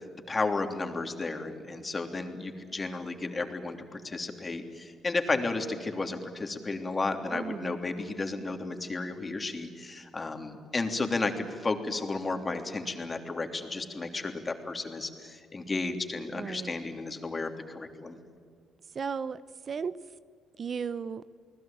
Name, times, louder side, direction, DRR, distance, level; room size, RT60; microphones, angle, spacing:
voice 1, 0.3-18.2, left 3 dB, 25° left, 5 dB, 3.2 m, -33 dB
voice 2, 7.3-7.8 16.4-16.7 18.9-19.4 19.7-20.0 20.6-21.2, right 6 dB, 45° right, 16 dB, 0.7 m, -34 dB
29.5 x 20.0 x 9.0 m, 2.1 s
cardioid pair, 90°, 0 cm